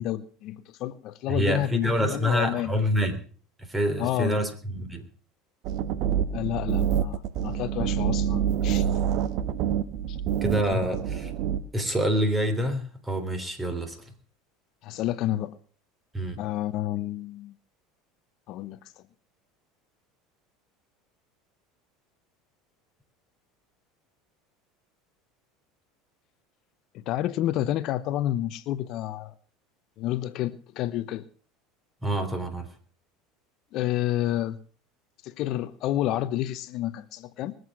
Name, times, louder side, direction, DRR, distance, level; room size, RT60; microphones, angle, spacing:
voice 1, 0.0-2.7 4.0-4.4 6.3-8.8 10.1-10.2 14.8-15.6 16.4-17.5 18.5-18.8 26.9-29.3 30.0-31.3 33.7-34.6 35.2-37.6, left 13 dB, 55° left, 0.8 m, -30 dB
voice 2, 1.3-3.2 3.6-5.1 10.4-11.3 11.7-14.0 16.1-16.4 32.0-32.7, equal, 15° right, 3.3 m, -27 dB
sound 1, 5.6-11.6, right 9 dB, 60° right, 1.2 m, -26 dB
21.5 x 7.9 x 6.2 m
supercardioid pair, 105°, 0 cm